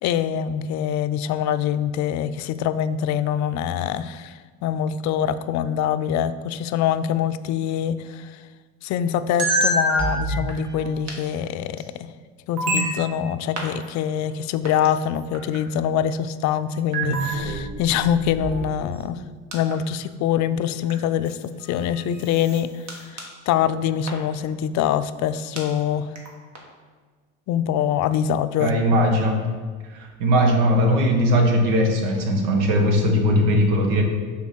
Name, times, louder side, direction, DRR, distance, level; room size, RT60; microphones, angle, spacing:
voice 1, 0.0-8.4 8.8-12.1 12.5-19.2 19.5-22.7 23.1-26.1 27.5-28.7, left 9 dB, 50° left, 13 dB, 0.5 m, -24 dB
sound 1, 9.4-11.1 11.8-11.9 12.6-13.3 13.6-13.7 14.7-14.9 15.3-15.6 16.9-19.1 19.5-19.7 20.9-21.0 21.7-21.8 22.1-22.6 22.9-23.0 23.2-23.3 24.1-24.2 25.6-25.7 26.2-26.3 26.6-26.7, right 1 dB, 50° right, 1.7 m, -25 dB
voice 2, 28.6-29.5 29.9-34.0, equal, 80° right, 3 dB, 1.3 m, -19 dB
6.2 x 3.9 x 5.8 m, 1.5 s
supercardioid pair, 90°, 35 cm